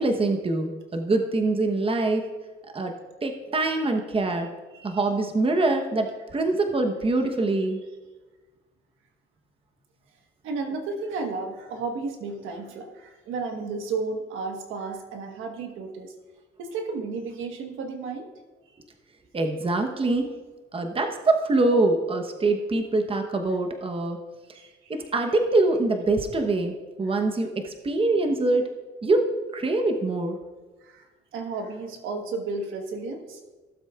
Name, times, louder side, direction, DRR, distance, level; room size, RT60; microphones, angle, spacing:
voice 1, 0.0-2.2 2.7-4.5 4.8-7.8 19.3-20.3 20.7-24.2 24.9-28.7 29.0-30.4, right 2 dB, 30° right, 4 dB, 1.0 m, -24 dB
voice 2, 10.4-16.1 16.6-18.3 24.5-24.9 27.1-27.2 30.8-33.4, right 4 dB, 85° right, 4 dB, 1.4 m, -33 dB
16.0 x 7.4 x 2.4 m, 1.3 s
cardioid pair, 90°, 20 cm